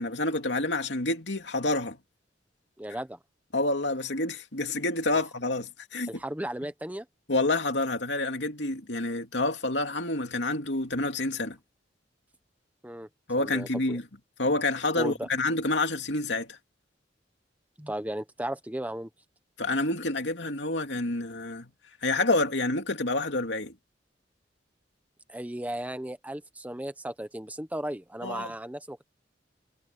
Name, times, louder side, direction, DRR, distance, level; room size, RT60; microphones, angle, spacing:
voice 1, 0.0-2.0 3.5-6.1 7.3-11.6 13.3-14.0 14.4-16.6 19.6-21.7 22.0-23.7 28.2-28.5, left 2 dB, 70° left, 2.9 m, -28 dB
voice 2, 2.8-3.2 6.0-7.0 12.8-13.1 13.4-14.0 15.0-15.3 17.8-19.1 25.3-29.0, right 1 dB, 10° right, 1.1 m, -35 dB
head